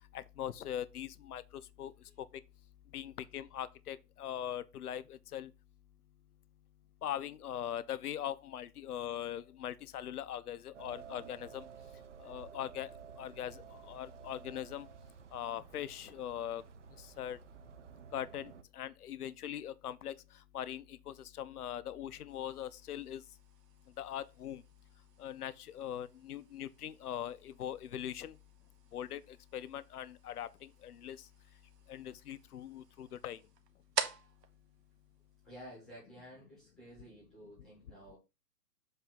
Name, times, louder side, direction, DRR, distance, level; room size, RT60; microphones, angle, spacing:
voice 1, 0.1-1.9 2.9-5.5 7.0-11.6 12.2-12.9 13.2-14.9 15.3-16.6 17.2-17.4 18.1-20.1 20.5-23.2 24.0-24.6 25.2-28.3 28.9-31.2 31.9-33.4, left 10 dB, 65° left, 0.6 m, -41 dB
sound 1, 10.7-18.6, right 7 dB, 50° right, 0.6 m, -53 dB
sound 2, 22.3-35.9, right 6 dB, 75° right, 1.2 m, -47 dB
voice 2, 35.4-38.2, equal, ahead, 0.8 m, -52 dB
7.7 x 2.6 x 5.7 m
hypercardioid pair, 160°, 49 cm